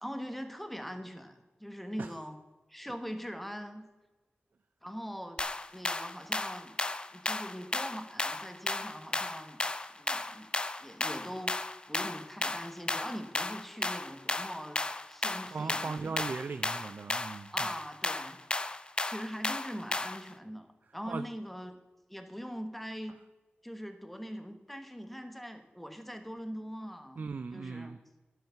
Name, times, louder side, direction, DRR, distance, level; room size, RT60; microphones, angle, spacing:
voice 1, 0.0-2.4 2.7-3.9 4.8-5.4 5.7-6.8 7.1-9.6 9.9-10.5 10.8-11.5 11.9-16.2 17.5-18.4 19.0-21.7 22.1-23.2 23.6-28.0, equal, 5° left, 7 dB, 1.2 m, -42 dB
sound 1, 5.4-20.3, left 2 dB, 25° left, 0.5 m, -34 dB
voice 2, 15.5-17.7 21.1-21.3 27.2-28.0, right 4 dB, 55° right, 11 dB, 0.4 m, -38 dB
12.0 x 9.2 x 5.7 m, 1.2 s
wide cardioid pair, 115°, 4 cm